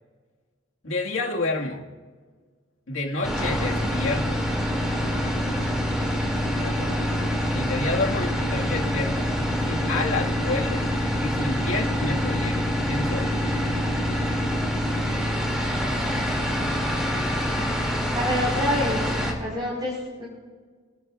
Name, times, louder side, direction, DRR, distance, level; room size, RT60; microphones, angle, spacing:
voice 1, 0.8-1.8 2.9-4.4 6.6-7.1 7.5-9.3 9.7-10.9 11.2-13.3, left 3 dB, 85° left, 0 dB, 2.0 m, -29 dB
sound 1, 3.2-19.3, equal, 5° right, 2.6 m, -25 dB
voice 2, 18.1-19.9 20.2-20.3, left 1 dB, 20° right, -8 dB, 5.3 m, -27 dB
28.0 x 12.0 x 2.5 m, 1.5 s
head